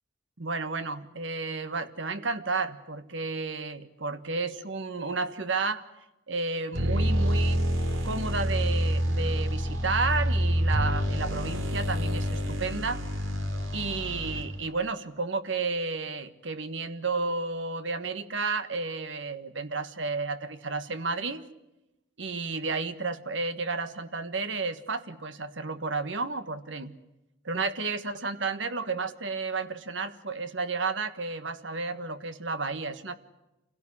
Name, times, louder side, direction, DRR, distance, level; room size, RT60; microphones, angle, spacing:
voice 1, 0.4-5.8 6.3-7.6 8.0-13.0 13.7-21.5 22.2-26.9 27.4-33.1, right 4 dB, 65° right, 12 dB, 1.5 m, -32 dB
sound 1, 6.7-14.7, equal, 80° right, 3.2 m, -27 dB
27.0 x 17.0 x 9.9 m, 0.96 s
head